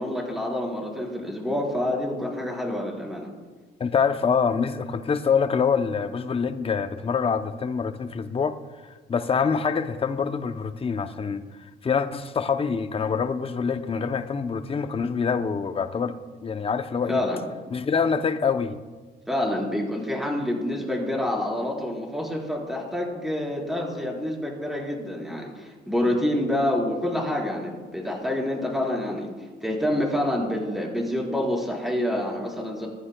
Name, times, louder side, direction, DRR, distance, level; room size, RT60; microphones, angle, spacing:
voice 1, 0.0-3.3 17.1-17.4 19.3-29.3 29.6-32.9, left 1 dB, ahead, -2 dB, 4.3 m, -27 dB
voice 2, 3.8-8.6 9.1-11.5 11.8-16.1 16.4-17.2 17.7-18.8, left 6 dB, 30° left, 9 dB, 0.7 m, -25 dB
25.5 x 11.0 x 2.3 m, 1.3 s
cardioid pair, 90°, 20 cm